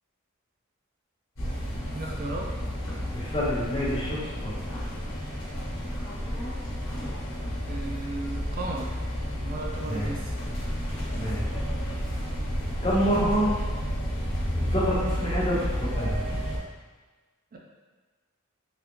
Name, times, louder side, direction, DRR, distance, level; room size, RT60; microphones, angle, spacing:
sound 1, 1.4-16.6, equal, 70° left, 0.9 m, -31 dB
voice 1, 1.8-2.5 7.7-9.0 9.3-10.3 17.5-17.6, right 2 dB, 45° right, -1 dB, 0.4 m, -35 dB
voice 2, 3.1-4.5 9.8-10.1 11.1-11.4 12.8-13.5 14.6-16.2, equal, 25° left, -9 dB, 1.1 m, -27 dB
3.4 x 2.5 x 3.0 m, 1.3 s
head